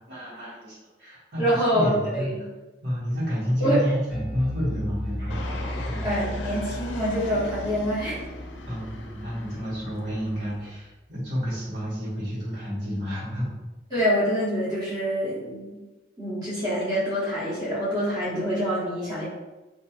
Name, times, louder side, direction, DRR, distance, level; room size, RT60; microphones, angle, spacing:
voice 1, 0.1-2.3 2.8-5.4 5.9-6.1 8.7-13.5, equal, 75° right, -10 dB, 1.3 m, -30 dB
voice 2, 1.4-2.4 3.6-3.8 6.0-8.2 13.9-15.8 16.2-19.2, equal, 20° right, -11 dB, 1.0 m, -26 dB
Bass guitar, 4.1-10.5, equal, 5° right, 0.6 m, -36 dB
Fixed-wing aircraft airplane, 5.3-10.7, left 2 dB, 90° left, 0.4 m, -39 dB
2.9 x 2.5 x 2.3 m, 1.1 s
head